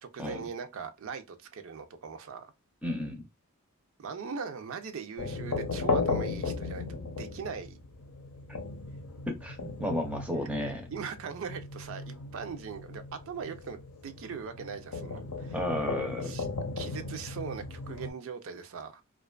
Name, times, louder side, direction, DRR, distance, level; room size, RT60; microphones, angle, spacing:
voice 1, 0.0-2.5 4.0-7.8 10.9-15.6 16.2-16.5 16.8-19.0, right 6 dB, 65° right, 0.4 m, -40 dB
voice 2, 2.8-3.2 8.5-8.6 9.3-10.8 15.5-16.4, left 1 dB, 5° right, 0.5 m, -33 dB
sound 1, 5.2-18.1, left 3 dB, 90° left, 0.6 m, -36 dB
2.5 x 2.3 x 2.2 m
head